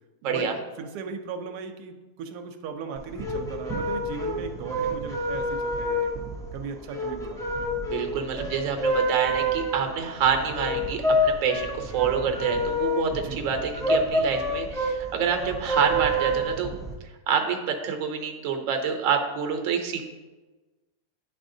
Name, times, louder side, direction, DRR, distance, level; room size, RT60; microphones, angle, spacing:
voice 1, 0.2-0.5 7.8-16.7 17.3-20.1, right 6 dB, 60° right, 4 dB, 1.0 m, -27 dB
voice 2, 0.8-6.2 6.5-7.4 13.1-13.4, right 5 dB, 85° right, 5 dB, 1.1 m, -37 dB
sound 1, 3.0-16.9, equal, 5° left, 0.4 m, -28 dB
10.0 x 4.2 x 2.6 m, 1.2 s
omnidirectional pair, 1.7 m